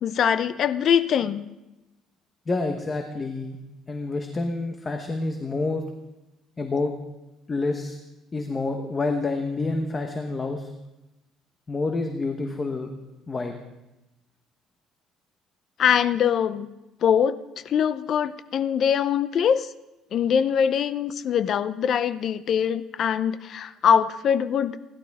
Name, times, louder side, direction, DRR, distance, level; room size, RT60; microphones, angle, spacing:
voice 1, 0.0-1.5 15.8-16.7 17.0-19.7 20.1-24.8, left 8 dB, 45° left, 14 dB, 0.7 m, -23 dB
voice 2, 2.5-3.6 3.9-5.8 6.6-6.9 7.5-8.0 8.3-10.7 11.7-12.9 13.3-13.5, left 3 dB, 20° left, 4 dB, 1.1 m, -28 dB
29.5 x 11.5 x 3.6 m, 0.98 s
cardioid pair, 145°, 0 cm